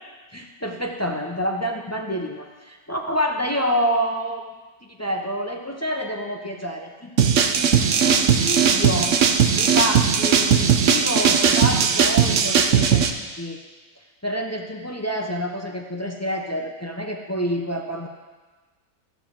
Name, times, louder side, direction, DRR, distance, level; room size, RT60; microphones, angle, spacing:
voice 1, 0.3-4.4 4.8-7.1 7.5-7.6 8.0-9.2 9.5-13.1 13.4-13.6 14.2-18.1, equal, 20° left, 1 dB, 0.4 m, -27 dB
sound 1, 7.2-13.1, right 7 dB, 65° right, 1.0 m, -18 dB
15.5 x 6.5 x 3.7 m, 1.3 s
omnidirectional pair, 1.5 m